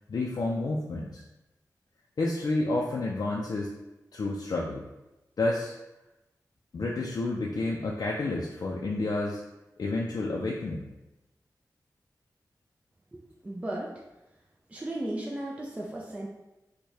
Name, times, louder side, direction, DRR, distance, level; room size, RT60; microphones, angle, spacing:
voice 1, 0.1-1.2 2.2-3.7 4.1-4.9 5.4-5.7 6.7-9.4 9.8-10.8, left 2 dB, 65° left, -2 dB, 0.4 m, -30 dB
voice 2, 13.1-14.0 14.7-16.3, right 1 dB, 20° right, -2 dB, 0.4 m, -35 dB
4.6 x 2.1 x 2.7 m, 0.99 s
wide cardioid pair, 105°, 7 cm